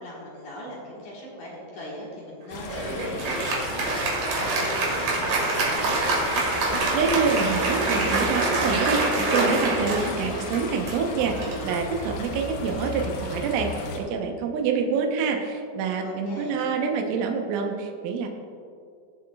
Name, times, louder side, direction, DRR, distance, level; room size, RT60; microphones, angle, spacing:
voice 1, 0.0-6.1 16.0-16.6, left 1 dB, 60° left, -5 dB, 2.1 m, -39 dB
sound 1, 2.5-14.0, left 3 dB, 80° left, 2.2 m, -35 dB
Applause, 2.7-12.5, right 2 dB, 55° right, 2.5 m, -26 dB
voice 2, 6.9-9.0 9.3-18.3, right 5 dB, 75° right, 2 dB, 3.2 m, -26 dB
20.5 x 7.3 x 2.3 m, 2.4 s
omnidirectional pair, 5.8 m